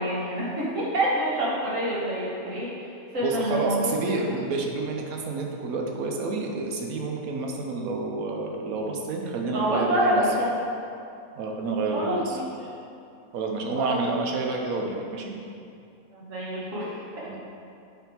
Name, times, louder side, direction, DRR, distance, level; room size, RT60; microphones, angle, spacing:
voice 1, 0.0-2.9 3.1-4.2 9.5-10.8 11.9-12.7 13.8-14.0 16.1-17.3, right 1 dB, 65° right, -7 dB, 1.7 m, -27 dB
voice 2, 3.2-10.2 11.3-12.4 13.3-15.4 17.3-17.4, right 3 dB, 80° right, 1 dB, 1.3 m, -29 dB
9.4 x 3.6 x 4.5 m, 2.5 s
omnidirectional pair, 1.5 m